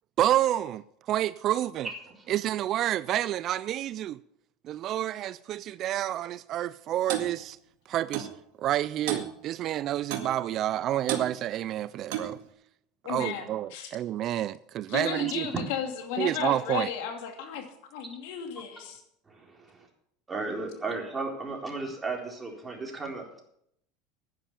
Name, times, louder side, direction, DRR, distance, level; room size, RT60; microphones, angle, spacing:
voice 1, 0.2-1.9 2.3-4.2 4.6-7.6 7.9-8.3 8.6-12.4 13.1-15.5 16.2-16.9, right 12 dB, 50° right, 0.4 m, -29 dB
Clock, 7.1-7.3 8.1-8.3 9.1-9.3 10.1-10.3 11.1-11.3 12.1-12.4, right 10 dB, 75° right, 2.0 m, -31 dB
voice 2, 13.0-13.9 14.9-19.0, left 8 dB, 70° left, 2.7 m, -34 dB
voice 3, 19.3-19.9 20.3-23.4, right 3 dB, 15° right, 4.0 m, -35 dB
10.5 x 10.0 x 7.1 m
supercardioid pair, 100°, 0 cm